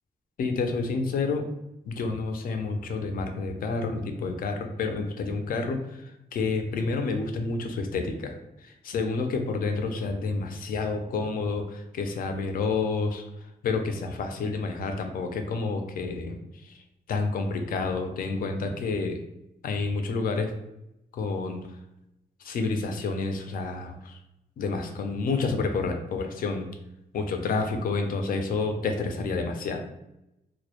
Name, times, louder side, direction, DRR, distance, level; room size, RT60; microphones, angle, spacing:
voice 1, 0.4-1.4 1.9-8.3 8.8-13.2 13.6-16.4 17.1-19.2 19.6-20.5 21.1-21.6 22.4-24.2 24.6-26.7 27.1-29.8, left 4 dB, 70° left, 5 dB, 0.4 m, -29 dB
2.2 x 2.0 x 2.8 m, 0.86 s
wide cardioid pair, 145°, 15 cm